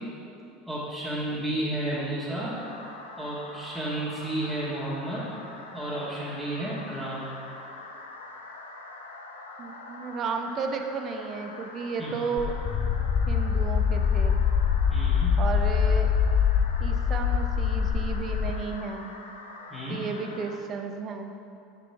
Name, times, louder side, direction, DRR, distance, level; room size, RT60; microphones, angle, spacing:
voice 1, 0.7-2.6 3.2-5.3 5.7-7.3 12.0-12.2 14.9-15.3 19.7-20.0, right 1 dB, 5° right, -10 dB, 1.6 m, -32 dB
sound 1, 2.5-20.6, left 2 dB, 85° left, 0.6 m, -44 dB
voice 2, 9.6-12.5 13.3-14.4 15.4-16.1 16.8-19.1 19.9-21.3, right 5 dB, 40° right, 5 dB, 0.6 m, -33 dB
sound 2, 12.4-18.5, left 7 dB, 40° left, 0.5 m, -24 dB
6.9 x 6.8 x 3.3 m, 2.6 s
hypercardioid pair, 75°, 0 cm